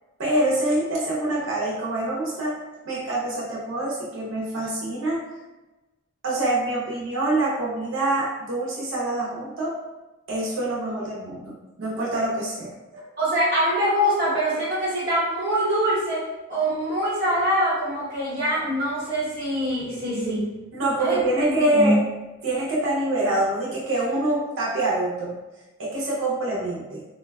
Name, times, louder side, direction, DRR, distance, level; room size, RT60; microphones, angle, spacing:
voice 1, 0.2-5.3 6.2-9.8 10.3-11.5 11.8-13.1 20.7-22.0 22.4-25.4 25.8-27.1, right 1 dB, 65° right, -5 dB, 0.6 m, -25 dB
voice 2, 13.2-20.5 21.0-21.4 21.7-22.0, equal, 35° right, -10 dB, 1.0 m, -24 dB
3.8 x 2.1 x 2.2 m, 1.1 s
head